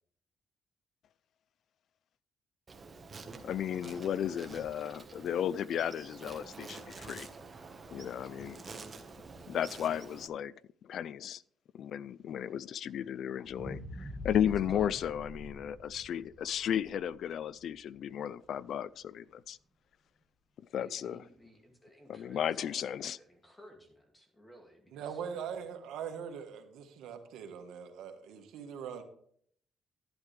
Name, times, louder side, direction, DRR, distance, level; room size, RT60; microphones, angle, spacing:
Insect, 2.7-10.3, right 4 dB, 35° right, 1.3 m, -48 dB
voice 1, 3.4-7.3 7.9-8.6 9.5-10.5 10.8-11.4 11.7-19.6 20.7-21.2 22.1-23.2, left 9 dB, 70° left, 0.3 m, -34 dB
sound 1, 13.5-17.7 18.2-18.3, equal, 5° right, 1.9 m, -45 dB
voice 2, 20.7-25.2, equal, 15° left, 2.3 m, -56 dB
voice 3, 24.9-29.0, right 7 dB, 85° right, 1.4 m, -41 dB
11.5 x 10.5 x 3.3 m
cardioid pair, 90°, 0 cm